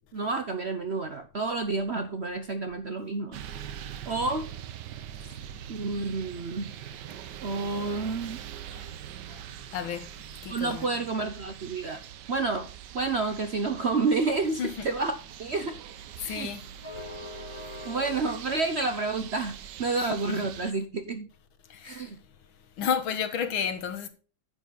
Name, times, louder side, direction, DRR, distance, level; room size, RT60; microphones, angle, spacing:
voice 1, 0.1-3.4 4.1-4.5 5.2-5.3 5.7-6.7 7.4-8.4 10.5-12.0 12.3-15.1 15.4-15.7 16.2-16.5 17.8-21.3 21.8-22.2, right 3 dB, 50° right, 0.8 m, -29 dB
sound 1, 3.3-20.7, right 10 dB, 65° right, 1.3 m, -43 dB
voice 2, 9.7-10.1 10.4-10.9 14.6-14.9 16.2-16.6 20.0-20.4 21.7-22.1 22.8-24.1, left 7 dB, 85° left, 2.0 m, -32 dB
sound 2, 14.4-20.6, left 2 dB, 15° left, 1.7 m, -46 dB
10.0 x 7.4 x 3.9 m
omnidirectional pair, 2.1 m